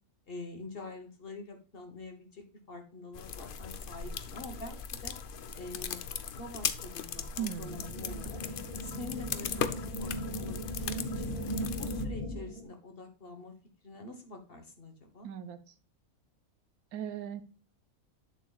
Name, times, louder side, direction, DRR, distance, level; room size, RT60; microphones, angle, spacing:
voice 1, 0.3-5.1 5.6-6.0 6.3-8.4 8.8-11.3 11.8-13.5 13.8-15.3, left 2 dB, 40° left, 5 dB, 1.3 m, -46 dB
sound 1, 3.1-12.0, left 7 dB, 60° left, 0.5 m, -38 dB
voice 2, 7.4-8.0 15.2-15.6 16.9-17.4, right 9 dB, 75° right, 11 dB, 1.2 m, -38 dB
sound 2, 7.6-12.6, equal, 25° left, 3.6 m, -37 dB
8.2 x 7.3 x 2.3 m, 0.36 s
omnidirectional pair, 1.6 m